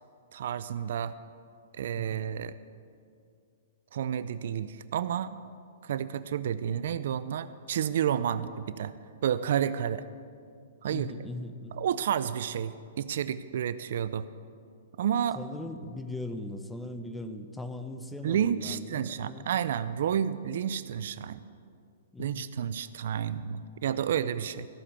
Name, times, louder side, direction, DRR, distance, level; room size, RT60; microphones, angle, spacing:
voice 1, 0.3-1.1 1.8-2.5 3.9-5.3 5.8-8.9 9.2-10.1 10.8-11.1 11.8-14.3 15.0-15.4 18.2-21.4 22.2-24.7, right 9 dB, 65° right, 14 dB, 0.5 m, -30 dB
voice 2, 2.0-2.3 10.9-11.8 15.3-19.5 22.1-22.4, left 2 dB, 5° left, 9 dB, 0.7 m, -39 dB
14.0 x 6.7 x 7.3 m, 2.3 s
hypercardioid pair, 135°, 0 cm